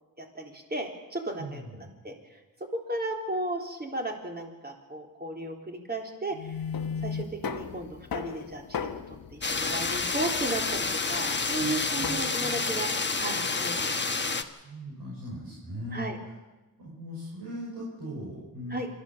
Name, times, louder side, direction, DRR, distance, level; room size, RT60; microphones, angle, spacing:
voice 1, 0.2-1.6 2.0-2.4 2.7-6.5 7.0-12.9 13.2-14.0 15.9-16.2 18.7-18.9, right 2 dB, 25° right, 2 dB, 3.8 m, -35 dB
voice 2, 1.4-2.0 11.6-12.6 14.5-16.1 16.8-18.8, equal, 85° right, -5 dB, 6.0 m, -39 dB
sound 1, 6.3-12.2, left 6 dB, 75° left, 1.3 m, -37 dB
sound 2, 9.4-14.4, left 4 dB, 30° left, 1.3 m, -29 dB
27.0 x 13.5 x 7.4 m, 1.1 s
wide cardioid pair, 95°, 36 cm